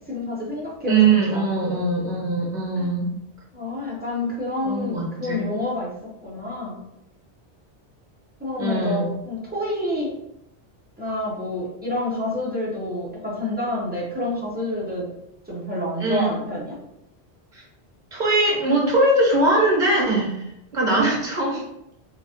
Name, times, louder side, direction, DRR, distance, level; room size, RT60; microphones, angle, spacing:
voice 1, 0.1-1.5 2.8-2.9 3.5-5.9 6.2-6.8 8.4-10.1 11.0-15.1 15.5-16.8, left 1 dB, 10° right, -6 dB, 0.7 m, -28 dB
voice 2, 0.9-3.1 4.6-5.4 8.6-9.1 16.0-16.3 17.5-17.6 18.1-20.4 20.7-21.6, right 2 dB, 45° right, -4 dB, 1.1 m, -21 dB
3.0 x 2.4 x 2.8 m, 0.81 s
omnidirectional pair, 1.1 m